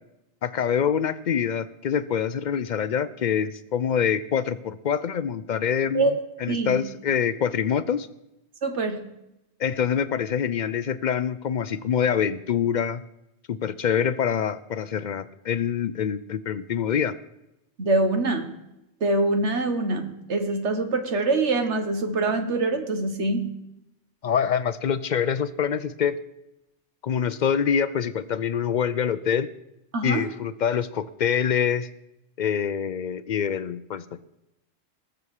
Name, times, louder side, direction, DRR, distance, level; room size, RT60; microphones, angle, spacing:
voice 1, 0.4-8.1 9.6-13.0 13.5-17.1 24.2-26.2 27.0-29.5 30.0-31.9 32.4-34.3, left 8 dB, 60° left, 15 dB, 0.5 m, -25 dB
voice 2, 6.5-6.8 8.6-9.0 17.8-18.5 19.0-23.5 29.9-30.2, right 2 dB, 75° right, 7 dB, 1.5 m, -24 dB
19.5 x 7.0 x 4.8 m, 0.88 s
omnidirectional pair, 1.2 m